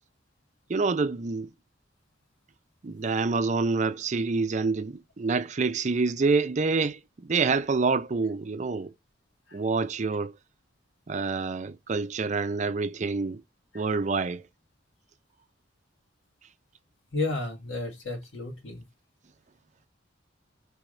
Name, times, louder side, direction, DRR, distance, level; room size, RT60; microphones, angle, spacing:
voice 1, 0.7-1.5 2.8-8.9 9.5-10.3 11.1-13.4 13.7-14.4, right 4 dB, 40° right, 0.5 m, -27 dB
voice 2, 17.1-18.8, left 2 dB, 80° left, 1.7 m, -32 dB
5.0 x 3.4 x 3.1 m
head